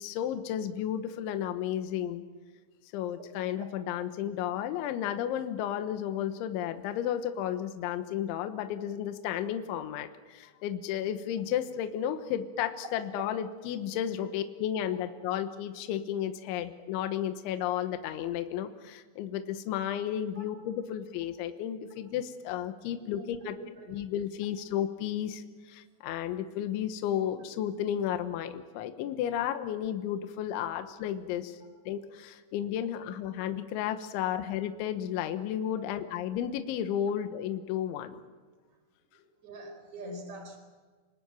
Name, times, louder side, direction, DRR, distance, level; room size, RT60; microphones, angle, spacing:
voice 1, 0.0-2.2 2.9-23.5 23.9-31.6 31.9-38.2, left 10 dB, 80° left, 8 dB, 3.5 m, -33 dB
voice 2, 22.9-23.5 23.8-23.9 35.8-35.9 39.4-40.6, right 1 dB, 40° right, 6 dB, 5.9 m, -44 dB
28.5 x 20.5 x 9.1 m, 1.4 s
omnidirectional pair, 5.5 m